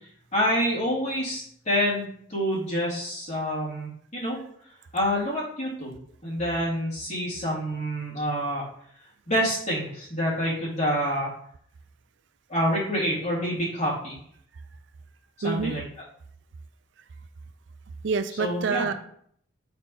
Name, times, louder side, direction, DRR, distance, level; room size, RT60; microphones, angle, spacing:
voice 1, 0.3-4.4 4.9-8.6 9.3-11.3 12.5-14.2 15.4-15.8 18.4-18.9, equal, 35° left, -7 dB, 2.6 m, -27 dB
voice 2, 15.4-15.8 18.0-18.9, right 5 dB, 60° right, 10 dB, 0.4 m, -27 dB
4.5 x 4.0 x 5.3 m, 0.65 s
head